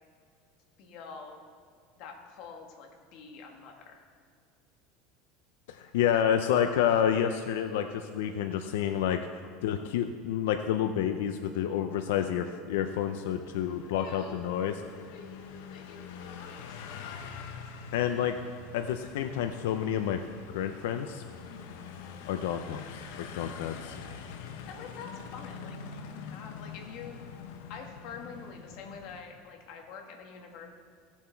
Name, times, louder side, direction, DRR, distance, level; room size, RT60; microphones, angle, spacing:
voice 1, 0.8-1.4 2.0-4.0 13.9-16.5 21.5-21.7 24.7-27.2 27.7-30.7, left 5 dB, 45° left, 2 dB, 1.6 m, -46 dB
voice 2, 5.7-9.2 9.6-14.8 17.9-18.4 18.7-20.2 20.5-21.2 22.3-24.0, left 9 dB, 90° left, 7 dB, 0.6 m, -29 dB
sound 1, 12.7-29.2, left 6 dB, 70° left, 0.9 m, -45 dB
17.0 x 7.2 x 4.5 m, 2.1 s
cardioid pair, 175°, 0 cm